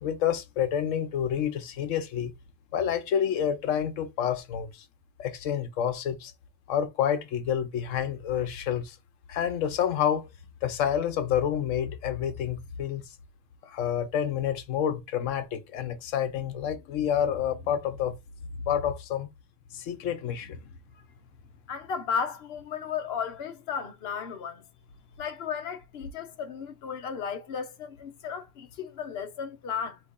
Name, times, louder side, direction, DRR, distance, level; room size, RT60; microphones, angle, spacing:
voice 1, 0.0-2.3 2.7-4.8 5.2-6.3 6.7-9.0 9.3-10.3 10.6-13.0 13.6-18.2 18.7-19.3 19.7-20.6, left 9 dB, 90° left, 1.0 m, -28 dB
voice 2, 21.7-24.6 25.2-30.0, left 6 dB, 55° left, 1.0 m, -34 dB
4.1 x 3.0 x 3.6 m
omnidirectional pair, 1.3 m